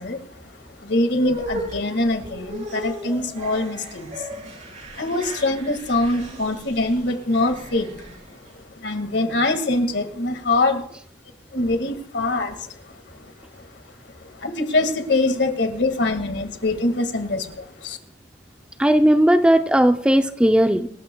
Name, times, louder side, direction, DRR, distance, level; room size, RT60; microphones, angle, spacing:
voice 1, 0.0-4.3 4.8-10.8 11.5-13.8 14.1-18.0, left 2 dB, 75° left, 7 dB, 1.9 m, -24 dB
sound 1, 1.1-8.6, right 1 dB, 45° right, 6.1 m, -36 dB
voice 2, 18.8-20.9, right 1 dB, 5° right, 7 dB, 0.5 m, -16 dB
26.0 x 13.0 x 2.3 m, 0.66 s
head